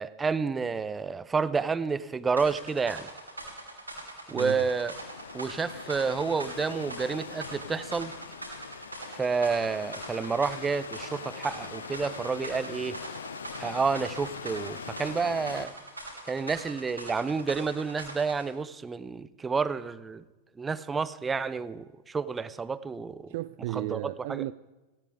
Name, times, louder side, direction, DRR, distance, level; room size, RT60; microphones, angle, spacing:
voice 1, 0.0-3.1 4.3-4.9 5.3-8.1 9.2-13.0 13.6-15.7 16.3-20.2 20.6-23.3 23.7-24.4, right 5 dB, 15° right, 0.6 m, -30 dB
sound 1, 2.4-18.5, right 2 dB, 85° right, 3.7 m, -43 dB
voice 2, 4.3-4.6 23.3-24.5, right 17 dB, 50° right, 0.3 m, -34 dB
sound 2, 4.6-15.7, left 6 dB, 70° left, 0.7 m, -42 dB
18.0 x 16.5 x 3.5 m
figure-of-eight pair, 90°, 0 cm